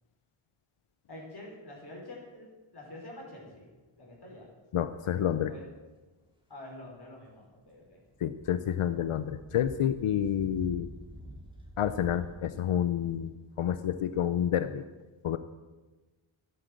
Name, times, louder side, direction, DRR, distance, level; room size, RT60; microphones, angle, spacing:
voice 1, 1.1-3.7 4.0-4.5 5.5-5.7 6.5-8.0, left 1 dB, 50° left, -2 dB, 5.0 m, -47 dB
voice 2, 4.7-5.5 8.2-10.9 11.8-14.8 15.2-15.4, left 10 dB, 85° left, 12 dB, 0.7 m, -29 dB
sound 1, 7.2-14.5, right 1 dB, 10° right, 2.8 m, -49 dB
12.0 x 9.9 x 7.6 m, 1.2 s
wide cardioid pair, 85°, 50 cm